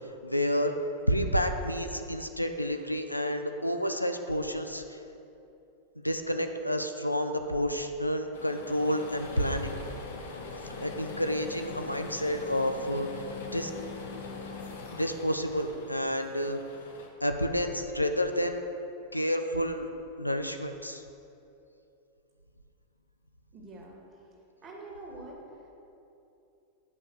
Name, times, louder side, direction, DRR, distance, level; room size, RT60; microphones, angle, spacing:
voice 1, 0.2-0.8 1.1-5.0 6.0-9.7 10.8-13.1 13.5-13.7 14.9-16.6 17.2-18.6 19.1-19.9 20.2-21.0, equal, 90° left, 6 dB, 0.5 m, -30 dB
sound 1, 8.3-17.1, left 4 dB, 60° left, 1.1 m, -42 dB
voice 2, 23.5-24.2 24.6-25.7, right 2 dB, 25° right, -2 dB, 2.1 m, -46 dB
9.5 x 5.4 x 6.4 m, 2.8 s
figure-of-eight pair, 90°, 0 cm